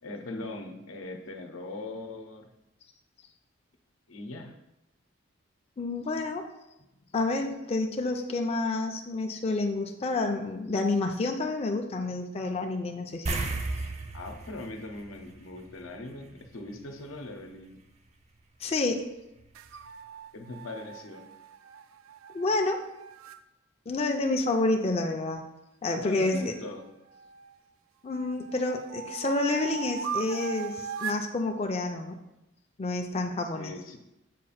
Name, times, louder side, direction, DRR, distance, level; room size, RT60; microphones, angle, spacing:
voice 1, 0.0-2.5 4.1-4.5 14.1-17.8 20.3-21.2 26.0-26.8 33.5-34.0, left 2 dB, 90° left, 4 dB, 0.8 m, -40 dB
voice 2, 5.8-6.4 7.1-13.4 18.6-19.0 22.3-22.8 23.9-25.4 25.8-26.5 28.0-32.2 32.8-33.7, left 2 dB, 30° left, 3 dB, 0.4 m, -29 dB
sound 1, 13.3-16.0 16.3-16.5 19.4-19.5 19.8-19.9, right 3 dB, 35° right, 0.5 m, -34 dB
sound 2, 19.5-23.4 26.3-27.6 28.1-31.3, right 7 dB, 85° right, 0.3 m, -39 dB
7.4 x 2.5 x 5.6 m, 0.92 s
head